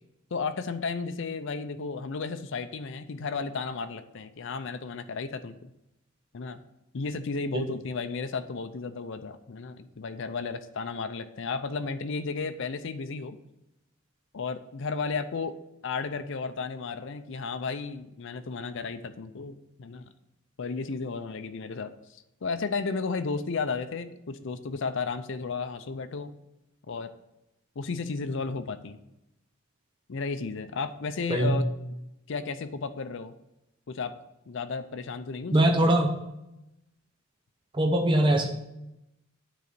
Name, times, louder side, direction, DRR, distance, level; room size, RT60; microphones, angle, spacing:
voice 1, 0.3-5.7 6.3-6.6 6.9-13.4 14.3-15.6 15.8-20.1 20.6-26.3 26.9-27.1 27.8-29.0 30.1-31.7 32.3-33.3 33.9-34.1 34.5-35.7, left 4 dB, 65° left, 9 dB, 0.5 m, -33 dB
voice 2, 35.5-36.2 37.7-38.5, right 1 dB, 25° right, 3 dB, 0.8 m, -22 dB
9.3 x 4.0 x 6.7 m, 0.90 s
head